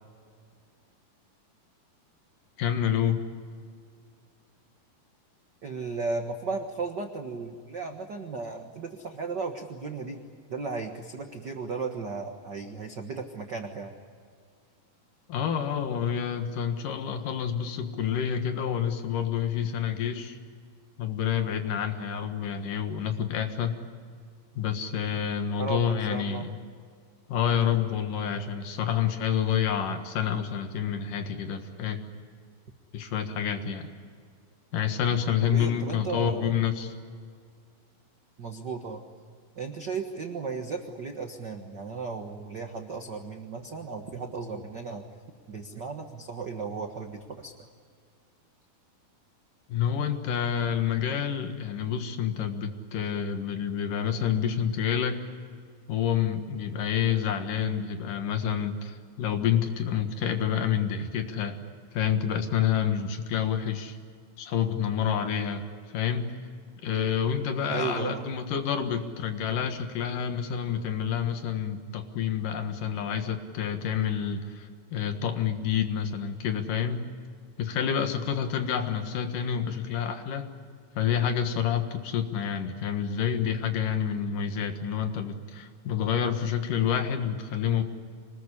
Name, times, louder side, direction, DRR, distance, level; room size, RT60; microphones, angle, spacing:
voice 1, 2.6-3.2 15.3-20.4 21.0-23.8 24.6-26.6 27.3-32.0 32.9-33.9 34.7-36.9 49.7-55.2 55.9-61.6 61.9-64.0 64.4-65.6 65.9-66.4 66.8-77.0 77.6-80.5 81.0-87.8, left 8 dB, 65° left, 7 dB, 2.9 m, -28 dB
voice 2, 5.6-10.2 10.5-13.9 25.6-26.5 35.4-36.5 38.4-39.1 39.5-45.0 45.5-47.7 67.7-68.3, right 4 dB, 85° right, 4 dB, 0.9 m, -35 dB
25.5 x 20.5 x 9.9 m, 2.1 s
omnidirectional pair, 4.3 m